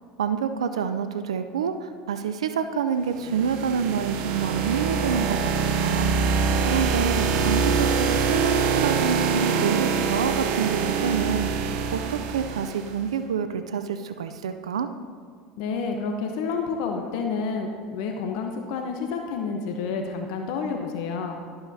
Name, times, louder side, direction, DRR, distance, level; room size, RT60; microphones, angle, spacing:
voice 1, 0.2-5.5 5.8-6.3 6.7-14.9, right 6 dB, 90° right, 9 dB, 0.4 m, -27 dB
sound 1, 3.1-13.0, right 5 dB, 65° right, 0.9 m, -24 dB
voice 2, 15.6-21.4, left 5 dB, 70° left, 3 dB, 0.9 m, -29 dB
12.5 x 8.8 x 2.7 m, 2.1 s
hypercardioid pair, 85°, 3 cm